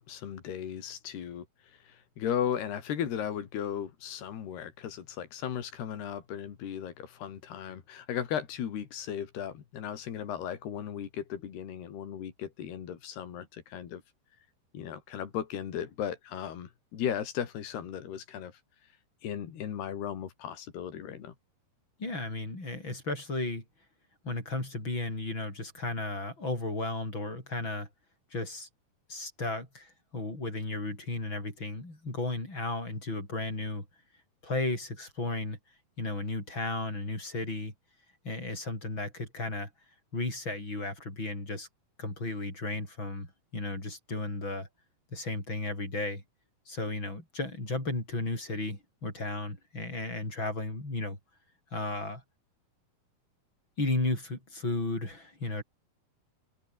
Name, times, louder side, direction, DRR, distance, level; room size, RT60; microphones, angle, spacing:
voice 1, 0.0-1.5 1.7-14.0 14.7-18.6 19.2-21.3, left 9 dB, 85° left, 4.9 m, -36 dB
voice 2, 22.0-23.6 24.2-27.9 28.3-28.7 29.1-33.8 34.4-35.6 36.0-37.7 38.2-39.7 40.1-41.7 42.0-43.3 43.5-44.7 45.1-46.2 46.7-51.2 51.7-52.2 53.8-55.6, left 2 dB, 30° left, 8.6 m, -34 dB
omnidirectional pair, 4.5 m